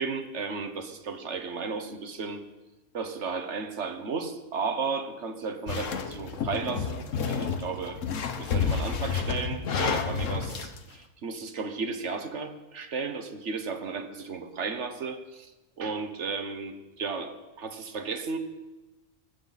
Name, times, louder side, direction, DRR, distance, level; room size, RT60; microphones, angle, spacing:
voice 1, 0.0-2.4 2.9-8.0 8.4-15.5 15.8-18.4, right 5 dB, 65° right, 8 dB, 1.5 m, -34 dB
sound 1, 5.7-10.8, left 6 dB, 75° left, 1.4 m, -30 dB
19.5 x 15.5 x 4.2 m, 1.1 s
omnidirectional pair, 1.3 m